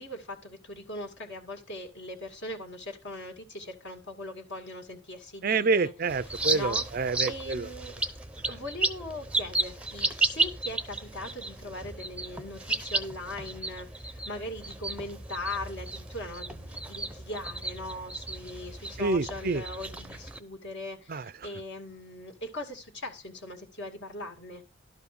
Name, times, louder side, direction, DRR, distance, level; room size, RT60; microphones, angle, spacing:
voice 1, 0.0-5.9 6.2-6.8 7.3-8.0 8.5-24.6, left 1 dB, 55° left, 2.2 m, -40 dB
voice 2, 5.4-7.7 19.0-19.6 21.1-21.2, right 4 dB, 45° right, 0.5 m, -27 dB
sound 1, 6.1-20.4, right 3 dB, 5° right, 0.7 m, -33 dB
12.0 x 4.8 x 6.7 m
head